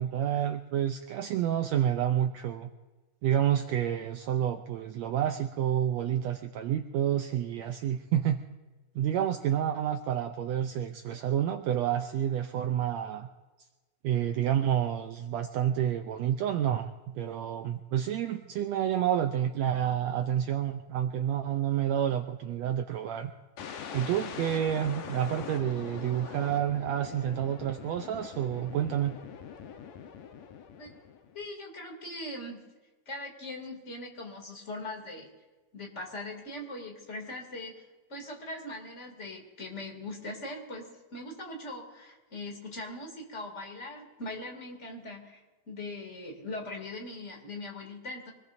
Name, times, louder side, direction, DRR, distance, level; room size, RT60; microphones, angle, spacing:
voice 1, 0.0-2.7 3.2-8.4 8.9-13.3 14.0-23.3 23.9-29.2, right 10 dB, 90° right, 6 dB, 1.5 m, -29 dB
sound 1, 23.6-31.4, left 7 dB, 80° left, 2.7 m, -43 dB
voice 2, 31.3-32.6 33.1-35.3 35.7-48.3, left 2 dB, 20° left, 0 dB, 2.7 m, -41 dB
24.5 x 20.0 x 2.7 m, 1.2 s
omnidirectional pair, 3.8 m